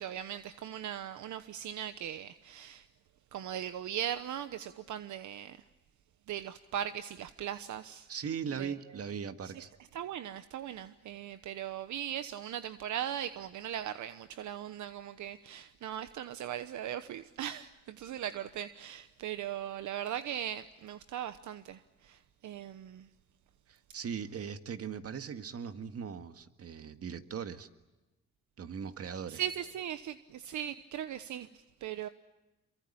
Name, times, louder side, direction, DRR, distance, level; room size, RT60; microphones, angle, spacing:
voice 1, 0.0-2.9 3.3-5.6 6.3-8.1 8.6-8.7 9.5-9.6 9.9-23.1 29.3-32.1, right 10 dB, 75° right, 1.1 m, -39 dB
voice 2, 8.1-9.7 23.7-27.7 28.6-29.4, right 7 dB, 50° right, 1.9 m, -39 dB
28.5 x 23.5 x 8.6 m
cardioid pair, 90°, 30 cm